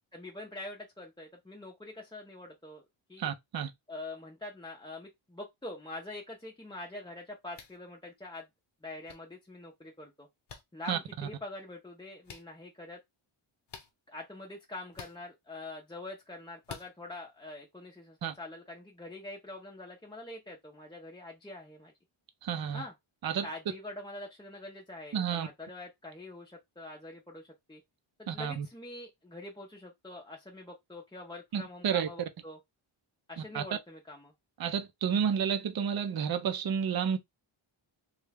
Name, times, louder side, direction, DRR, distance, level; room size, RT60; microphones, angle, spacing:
voice 1, 0.1-2.8 3.1-3.3 3.9-8.5 8.8-10.3 10.7-13.0 14.1-21.9 22.7-22.9 23.4-27.8 28.2-32.6 33.3-34.3, left 2 dB, 10° left, 0.6 m, -45 dB
voice 2, 3.2-3.7 10.9-11.0 18.2-18.3 22.4-22.8 23.2-23.5 25.1-25.5 28.3-28.7 31.5-32.1 33.5-33.6 34.6-37.2, right 7 dB, 50° right, 0.6 m, -30 dB
sound 1, 7.5-7.8 9.1-9.2 10.5-10.6 12.2-12.4 13.7-13.9 14.9-15.2 16.6-16.9, left 6 dB, 55° left, 0.9 m, -46 dB
3.2 x 2.4 x 3.3 m
wide cardioid pair, 135°, 50 cm